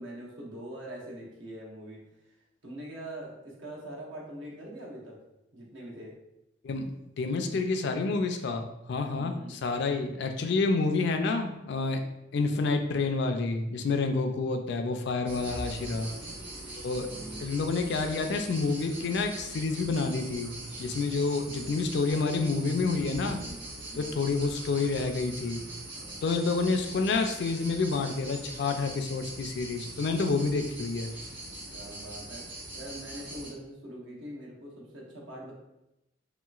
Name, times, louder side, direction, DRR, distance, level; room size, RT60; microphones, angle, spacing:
voice 1, 0.0-5.2 5.5-6.2 9.1-9.5 15.4-16.3 17.1-17.4 21.4-21.8 23.1-23.6 23.9-24.2 25.9-26.2 31.7-35.5, right 1 dB, 75° right, -3 dB, 0.9 m, -44 dB
voice 2, 6.6-12.0 12.3-16.1 16.8-17.1 17.4-20.5 20.8-23.4 24.0-25.6 26.2-31.2, left 3 dB, 60° left, 6 dB, 0.3 m, -29 dB
sound 1, 15.3-33.5, right 1 dB, 60° right, 1.1 m, -42 dB
3.0 x 2.9 x 2.3 m, 0.89 s
head